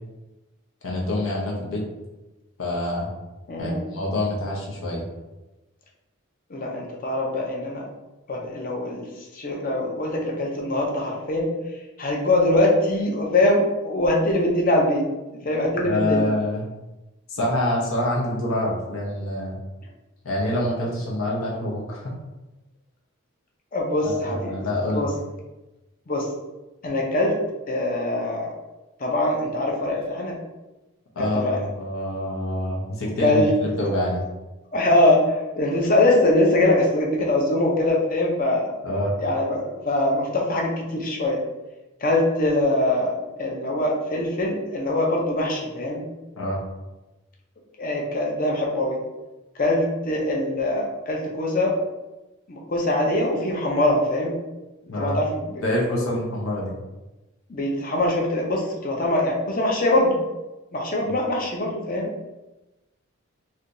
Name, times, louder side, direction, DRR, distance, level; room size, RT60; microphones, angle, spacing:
voice 1, 0.8-1.8 2.6-3.1 3.6-5.0 15.8-16.6 17.3-19.6 20.2-22.1 24.0-25.1 31.2-34.2 38.8-39.1 46.4-46.6 54.9-55.2 55.6-56.7 61.0-61.1, left 1 dB, 80° left, -3 dB, 0.8 m, -26 dB
voice 2, 3.5-3.9 6.5-7.8 8.3-9.1 9.3-11.5 12.0-15.1 15.4-16.3 23.7-24.4 24.9-25.1 26.1-26.3 26.8-27.4 27.7-28.5 29.0-30.4 31.2-31.7 33.0-33.5 34.7-38.7 39.2-41.4 42.0-43.1 43.4-46.1 47.8-49.0 49.6-51.8 52.5-54.4 55.0-55.6 57.5-60.2 60.7-62.1, left 1 dB, 40° left, -1 dB, 0.6 m, -23 dB
3.3 x 2.8 x 2.6 m, 1.0 s
head